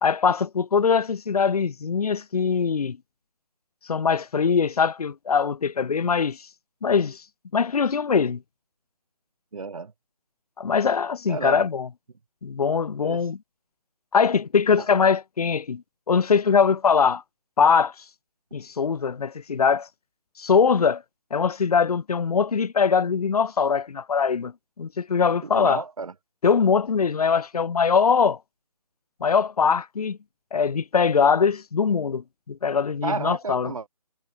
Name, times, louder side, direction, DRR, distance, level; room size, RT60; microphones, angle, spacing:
voice 1, 0.0-3.0 3.9-6.4 6.8-7.2 7.5-8.4 10.6-11.9 12.4-13.4 14.1-15.8 16.1-17.2 17.6-17.9 18.5-19.9 20.4-21.0 21.3-24.5 24.8-25.8 26.4-28.4 29.2-30.2 30.5-33.7, left 6 dB, 65° left, 0.6 m, -22 dB
voice 2, 9.5-9.9 11.3-11.6 13.0-13.2 25.5-26.1 33.0-33.9, right 4 dB, 55° right, 2.9 m, -31 dB
figure-of-eight pair, 150°, 21 cm